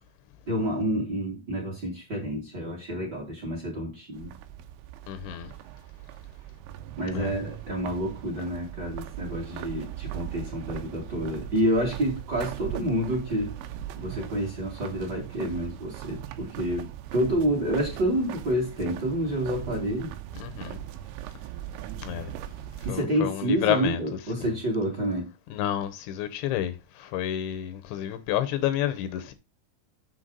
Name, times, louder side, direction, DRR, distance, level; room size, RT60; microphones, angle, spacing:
voice 1, 0.5-4.3 7.0-13.5 13.9-20.1 22.8-25.3, equal, 30° right, 2.6 m, -28 dB
sound 1, 4.1-22.9, right 12 dB, 90° right, 3.1 m, -39 dB
voice 2, 5.1-5.5 7.1-7.3 20.4-20.8 22.0-22.3 22.9-24.0 25.5-29.3, left 11 dB, 80° left, 3.2 m, -30 dB
7.6 x 7.1 x 3.9 m
omnidirectional pair, 5.2 m